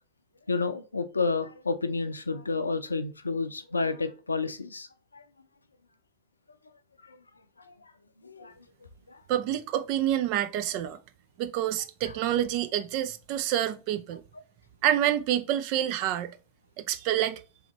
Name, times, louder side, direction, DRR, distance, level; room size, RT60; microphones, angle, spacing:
voice 1, 0.5-4.9 5.1-5.2 7.1-7.2 7.7-7.8 8.2-8.5 9.1-9.2, left 4 dB, 80° left, 0.5 m, -30 dB
voice 2, 9.3-11.0 11.4-14.2 14.8-16.4 16.8-17.4, right 11 dB, 45° right, 0.4 m, -27 dB
3.8 x 3.4 x 3.0 m
figure-of-eight pair, 90°, 0 cm